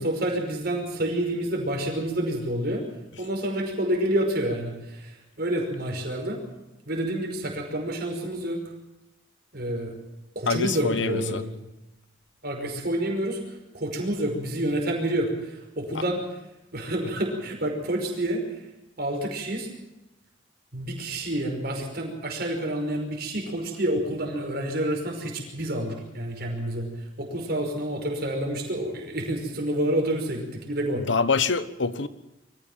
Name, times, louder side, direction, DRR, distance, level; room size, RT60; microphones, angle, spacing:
voice 1, 0.0-2.8 3.2-6.4 6.9-8.6 9.5-9.9 10.4-11.5 12.4-16.2 16.7-18.7 19.0-19.7 20.7-31.0, right 1 dB, 55° right, 2 dB, 5.3 m, -28 dB
voice 2, 10.5-11.4 31.1-32.1, left 4 dB, 75° left, 13 dB, 1.3 m, -25 dB
24.0 x 15.5 x 7.4 m, 0.98 s
head